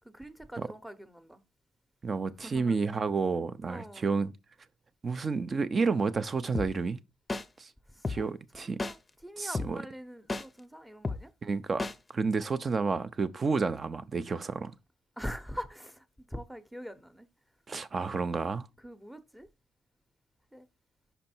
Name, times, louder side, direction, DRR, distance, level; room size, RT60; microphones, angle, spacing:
voice 1, 0.0-1.4 2.4-2.8 3.7-4.1 7.9-8.3 8.5-9.0 9.2-11.3 15.2-17.3 18.8-19.5 20.5-20.7, equal, 5° right, 0.9 m, -43 dB
voice 2, 2.0-4.3 5.0-7.0 7.6-7.7 8.1-8.8 9.4-9.8 11.4-11.9 12.1-14.7 17.7-18.7, right 4 dB, 35° right, 0.6 m, -30 dB
sound 1, 6.5-6.7 7.3-7.4 8.0-8.2 8.8-8.9 9.5-9.7 10.3-10.4 11.0-11.2 11.8-11.9, left 3 dB, 20° left, 0.6 m, -31 dB
5.6 x 5.1 x 4.4 m
cardioid pair, 90°, 0 cm